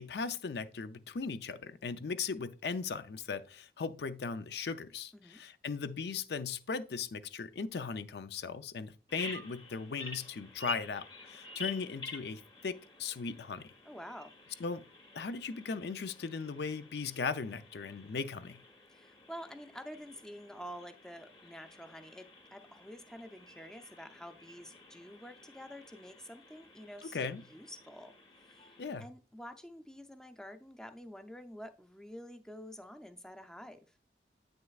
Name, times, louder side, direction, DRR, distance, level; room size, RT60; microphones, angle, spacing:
voice 1, 0.0-13.7 14.6-14.8 15.1-18.6 27.1-27.4 28.8-29.1, left 5 dB, 70° left, 0.5 m, -38 dB
Bird vocalization bird call bird song, 9.1-28.9, left 2 dB, 25° left, 0.9 m, -50 dB
voice 2, 13.8-14.3 18.9-28.1 28.4-28.7 29.0-33.9, equal, 5° left, 0.5 m, -48 dB
8.5 x 6.4 x 2.4 m
head